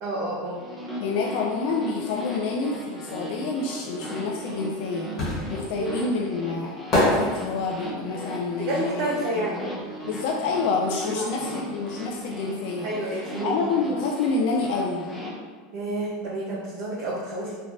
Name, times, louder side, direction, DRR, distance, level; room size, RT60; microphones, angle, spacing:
voice 1, 0.0-0.6 5.7-6.0 8.6-9.6 11.0-11.3 12.8-13.5 15.7-17.6, right 1 dB, 60° right, -6 dB, 0.6 m, -29 dB
sound 1, 0.6-15.3, equal, 10° left, 0.5 m, -37 dB
voice 2, 1.0-9.1 9.3-9.5 10.0-15.1, left 4 dB, 65° left, -1 dB, 0.3 m, -28 dB
sound 2, 4.3-10.2 10.4-12.0 12.3-12.4, left 1 dB, 35° left, 1.1 m, -28 dB
3.2 x 2.1 x 2.5 m, 1.5 s
hypercardioid pair, 105°, 0 cm